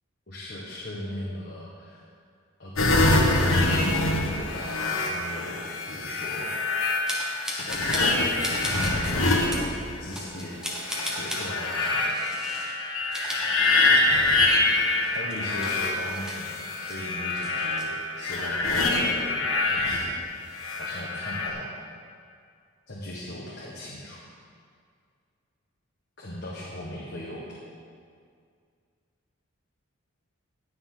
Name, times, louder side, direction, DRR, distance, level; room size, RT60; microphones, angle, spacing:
voice 1, 0.3-2.0 2.6-6.5 7.5-8.3 8.7-9.6 10.0-10.5 11.1-12.2 15.1-20.1 20.7-21.7 22.9-24.2 26.2-27.5, left 1 dB, 50° left, -6 dB, 1.5 m, -38 dB
sound 1, 2.8-10.1 10.7-20.1 20.5-21.5, left 2 dB, 70° left, 1.4 m, -25 dB
sound 2, 7.1-8.1 8.4-9.1 9.5-9.7 10.1-11.5 12.1-12.7 13.0-14.2 14.5-14.6 15.1-17.0 17.3-17.8, equal, 5° right, 1.3 m, -35 dB
19.0 x 6.7 x 3.9 m, 2.2 s
head